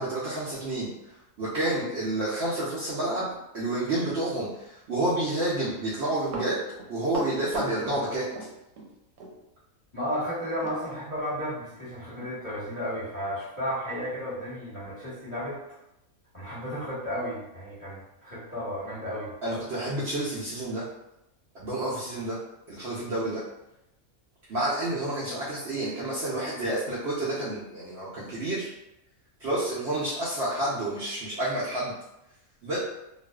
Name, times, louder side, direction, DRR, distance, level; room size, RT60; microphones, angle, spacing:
voice 1, 0.0-3.3 3.5-6.6 6.9-8.3 19.4-20.8 21.5-22.4 22.7-23.4 24.5-28.7 29.4-31.9 32.6-32.8, right 1 dB, 65° right, -8 dB, 0.7 m, -29 dB
Run, 6.3-8.9 9.2-9.3 10.6-10.8 11.2-11.3 11.8-11.9 12.2-12.4 12.9-13.0, right 3 dB, 85° right, 1.1 m, -37 dB
voice 2, 9.9-15.8 16.3-19.3, equal, 25° left, -11 dB, 1.0 m, -33 dB
2.5 x 2.3 x 2.2 m, 0.86 s
omnidirectional pair, 1.5 m